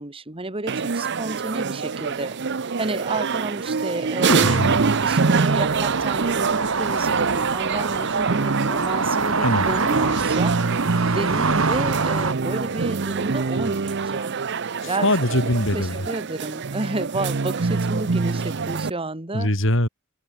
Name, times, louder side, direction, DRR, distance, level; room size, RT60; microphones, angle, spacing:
voice 1, 0.0-2.4 2.8-10.6 11.1-15.1 15.7-19.5, right 2 dB, 25° right, 1.9 m, -31 dB
sound 1, 0.7-18.9, right 4 dB, 55° right, 0.7 m, -25 dB
voice 2, 4.3-4.8 9.4-9.7 14.8-16.0 19.3-19.9, left 1 dB, 65° left, 5.3 m, -22 dB
sound 2, 4.3-12.3, right 4 dB, 75° right, 2.2 m, -25 dB
head